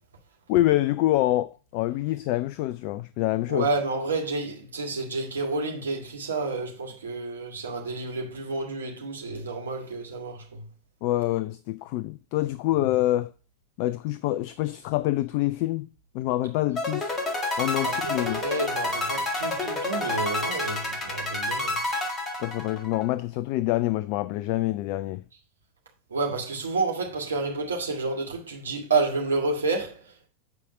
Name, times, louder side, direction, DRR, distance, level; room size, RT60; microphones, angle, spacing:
voice 1, 0.5-3.7 11.0-13.3 13.8-15.9 16.1-17.2 17.6-18.4 22.4-25.2, left 16 dB, 45° left, 0.4 m, -26 dB
voice 2, 3.5-10.6 17.8-21.8 26.1-30.3, right 3 dB, 70° right, 2.4 m, -30 dB
sound 1, 16.8-23.1, left 2 dB, 20° left, 1.8 m, -29 dB
8.4 x 4.9 x 5.0 m
figure-of-eight pair, 90°, 0 cm